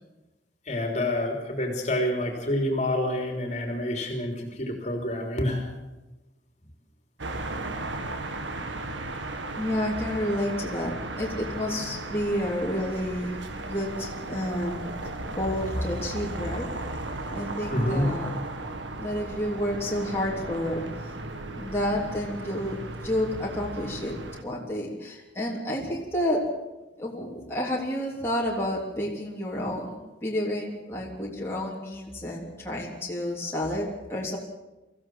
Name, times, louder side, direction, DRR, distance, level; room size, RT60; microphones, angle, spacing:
voice 1, 0.7-5.7 17.7-18.1, left 1 dB, 40° left, 3 dB, 3.4 m, -28 dB
sound 1, 7.2-24.4, right 2 dB, 85° right, 1.9 m, -36 dB
voice 2, 9.6-13.3 13.6-14.9 15.4-16.7 17.3-18.3 19.0-21.1 21.5-22.8 23.0-24.2 24.4-26.5 27.0-34.4, left 1 dB, 15° left, -4 dB, 3.4 m, -30 dB
24.0 x 15.5 x 7.8 m, 1.1 s
head